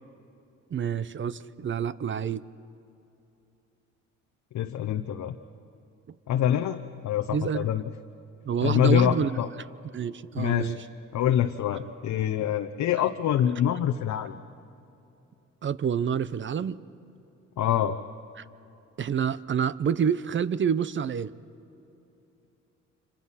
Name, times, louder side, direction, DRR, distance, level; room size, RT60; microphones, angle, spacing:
voice 1, 0.7-2.4 7.3-7.7 8.5-9.4 9.9-10.8 15.6-16.8 18.4-18.5 19.0-21.3, right 7 dB, 40° right, 17 dB, 0.7 m, -28 dB
voice 2, 4.5-5.3 6.3-7.8 8.6-9.5 10.4-10.7 11.1-14.4 17.6-18.0, left 10 dB, 70° left, 6 dB, 0.9 m, -25 dB
28.0 x 26.5 x 5.8 m, 2.8 s
cardioid pair, 90°, 30 cm